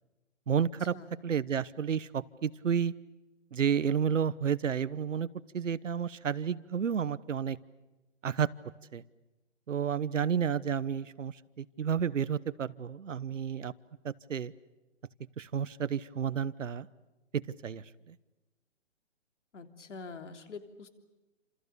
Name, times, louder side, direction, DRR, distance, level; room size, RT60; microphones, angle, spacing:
voice 1, 0.5-0.9 1.2-2.9 3.5-5.3 5.5-7.6 8.2-8.5 8.9-9.0 9.7-13.7 14.0-14.5 15.4-16.9 17.3-17.8, right 7 dB, 75° right, 16 dB, 1.2 m, -31 dB
voice 2, 19.5-20.9, left 4 dB, 70° left, 7 dB, 3.3 m, -45 dB
29.0 x 27.5 x 6.9 m, 1.1 s
hypercardioid pair, 160°, 38 cm